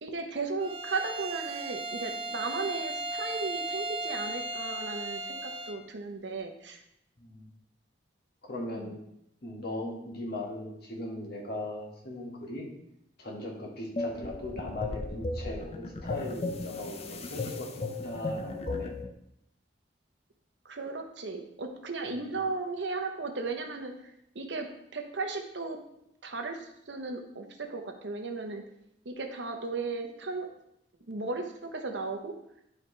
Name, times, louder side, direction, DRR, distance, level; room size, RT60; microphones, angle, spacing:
voice 1, 0.0-6.8 8.8-8.9 20.6-25.8 26.2-28.6 29.0-30.5 31.1-32.3, right 3 dB, 80° right, 4 dB, 1.0 m, -36 dB
Bowed string instrument, 0.6-5.8, right 2 dB, 35° right, 0.6 m, -36 dB
voice 2, 8.5-9.0 9.4-12.7 13.2-18.9, left 1 dB, 60° left, -1 dB, 1.8 m, -38 dB
sound 1, 14.0-19.1, left 2 dB, 35° left, 0.6 m, -35 dB
10.5 x 4.7 x 3.3 m, 0.78 s
head